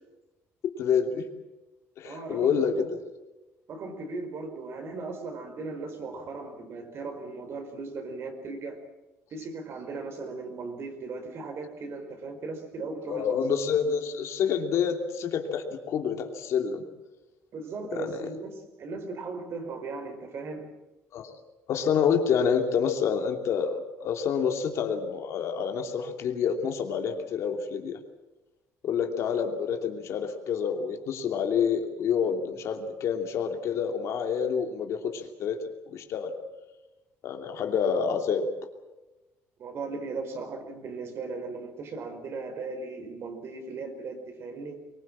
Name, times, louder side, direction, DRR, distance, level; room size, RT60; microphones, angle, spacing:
voice 1, 0.6-1.3 2.0-3.0 13.1-16.8 17.9-18.3 21.1-21.4 21.7-28.0 28.8-35.6 35.9-36.3 37.2-38.5, left 7 dB, 65° left, 4 dB, 2.9 m, -28 dB
voice 2, 2.0-2.9 3.7-8.8 9.3-13.6 17.5-20.7 39.6-44.8, right 3 dB, 50° right, 6 dB, 4.9 m, -37 dB
23.0 x 21.0 x 7.5 m, 1.1 s
cardioid pair, 125°, 5 cm